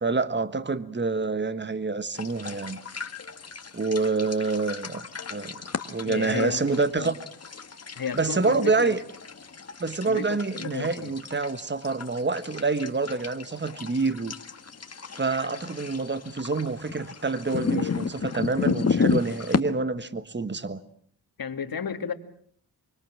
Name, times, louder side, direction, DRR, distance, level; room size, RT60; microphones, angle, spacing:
voice 1, 0.0-2.8 3.7-5.5 5.9-7.1 8.1-9.0 9.8-14.3 15.1-20.8, right 3 dB, 30° right, 1.4 m, -27 dB
sound 1, 2.1-19.6, left 5 dB, 40° left, 1.6 m, -33 dB
voice 2, 6.0-7.1 7.9-8.9 10.1-11.1 21.4-22.1, left 6 dB, 60° left, 2.1 m, -33 dB
25.0 x 24.5 x 7.4 m
wide cardioid pair, 85°, 39 cm